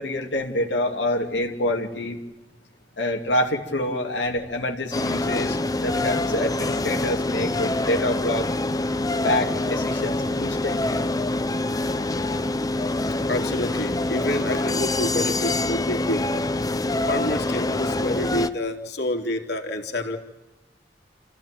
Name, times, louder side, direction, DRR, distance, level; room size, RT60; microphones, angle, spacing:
voice 1, 0.0-2.2 3.0-8.5 9.2-11.0, left 1 dB, 80° left, 1 dB, 2.6 m, -26 dB
sound 1, 4.9-18.5, left 2 dB, 20° left, 0.8 m, -25 dB
voice 2, 13.3-16.4 17.1-20.2, left 1 dB, 65° left, 3 dB, 3.2 m, -28 dB
28.5 x 15.5 x 9.0 m, 1.1 s
head